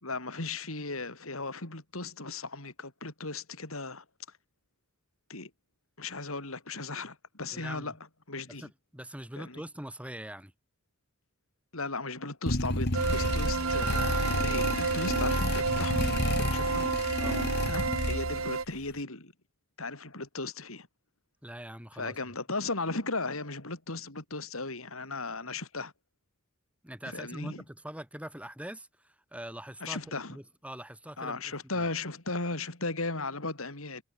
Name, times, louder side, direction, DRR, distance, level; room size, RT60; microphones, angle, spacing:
voice 1, 0.0-4.1 5.3-5.5 6.0-8.0 8.3-8.7 9.4-9.6 11.7-16.9 17.7-19.3 19.8-20.9 22.0-25.9 27.1-27.6 29.8-30.4 31.2-34.0, left 3 dB, 75° left, 5.2 m, -36 dB
voice 2, 7.5-7.9 8.5-10.5 17.2-17.5 21.4-22.2 26.8-30.0 30.3-31.9, right 1 dB, 5° right, 6.1 m, -43 dB
sound 1, 12.5-18.5, left 1 dB, 55° left, 3.7 m, -31 dB
sound 2, 12.9-18.6, right 4 dB, 75° right, 1.4 m, -30 dB
head